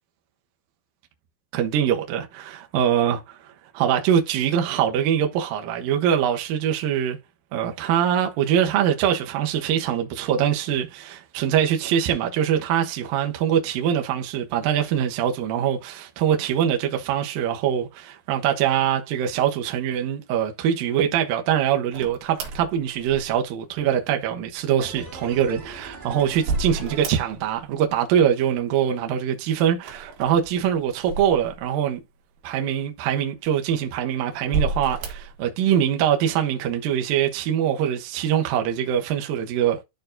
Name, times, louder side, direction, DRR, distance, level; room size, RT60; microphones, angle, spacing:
voice 1, 1.5-3.4 3.7-7.2 7.5-32.0 32.4-39.8, right 9 dB, 85° right, 2.0 m, -23 dB
sound 1, 21.9-23.6 25.4-27.7 27.9-28.6 29.8-31.9 32.5-32.6 33.4-34.0 34.4-35.4, right 3 dB, 65° right, 3.4 m, -32 dB
sound 2, 24.8-27.9 28.2-28.3, right 2 dB, 20° right, 1.9 m, -42 dB
13.5 x 4.5 x 2.6 m
omnidirectional pair, 5.9 m